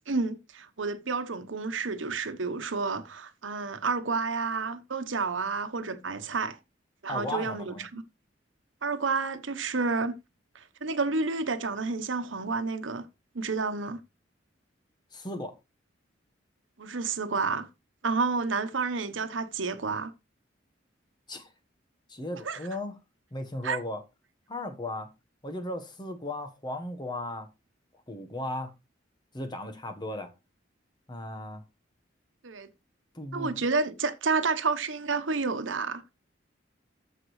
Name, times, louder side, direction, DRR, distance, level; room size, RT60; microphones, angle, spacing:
voice 1, 0.0-6.6 7.0-8.0 8.8-10.2 10.5-13.1 13.3-14.0 16.8-17.7 18.0-20.1 22.4-22.6 23.6-23.8 32.4-32.7 33.3-36.0, right 4 dB, 90° right, 1.0 m, -30 dB
voice 2, 7.1-7.9 15.1-15.6 21.3-21.5 22.1-23.0 23.3-24.0 24.5-25.1 25.4-27.5 28.1-28.7 29.3-30.3 31.1-31.6 33.1-33.5, left 1 dB, 25° left, 1.2 m, -36 dB
14.0 x 5.0 x 3.2 m
head